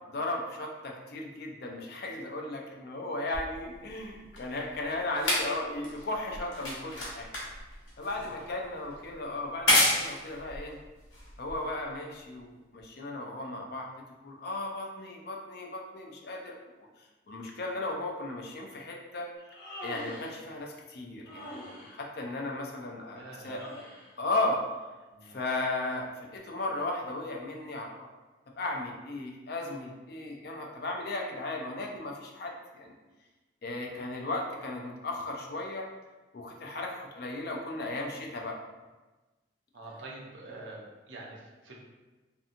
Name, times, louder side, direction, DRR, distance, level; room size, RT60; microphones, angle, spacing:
voice 1, 0.1-7.3 8.0-10.8 11.4-13.9 14.2-16.6 17.3-19.3 19.8-21.6 21.9-23.8 24.2-24.6 25.2-28.1 28.6-32.9 33.6-35.9 36.3-38.6, left 2 dB, 55° left, 1 dB, 0.4 m, -35 dB
sound 1, 3.3-11.9 12.8-12.9, left 1 dB, 80° left, 0.9 m, -31 dB
voice 2, 8.2-8.8 23.1-23.7 25.1-25.5 39.7-41.7, right 2 dB, 75° right, -2 dB, 0.6 m, -46 dB
Human voice, 19.4-20.4 21.2-22.0 23.4-24.1, equal, 5° right, 0.9 m, -43 dB
2.6 x 2.6 x 2.5 m, 1.2 s
head